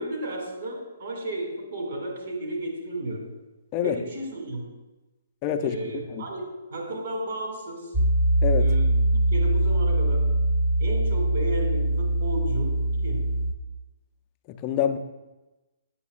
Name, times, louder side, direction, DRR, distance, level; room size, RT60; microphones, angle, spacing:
voice 1, 0.0-3.2 3.8-4.7 5.6-8.0 8.6-10.3 10.8-12.8 13.0-13.2, right 1 dB, 60° right, 0 dB, 2.1 m, -33 dB
voice 2, 5.4-6.2 8.4-8.7 14.5-15.0, left 9 dB, 30° left, 8 dB, 0.4 m, -27 dB
Piano, 7.9-13.5, right 1 dB, 10° right, 0.6 m, -22 dB
8.2 x 6.1 x 2.4 m, 1.1 s
hypercardioid pair, 140°, 0 cm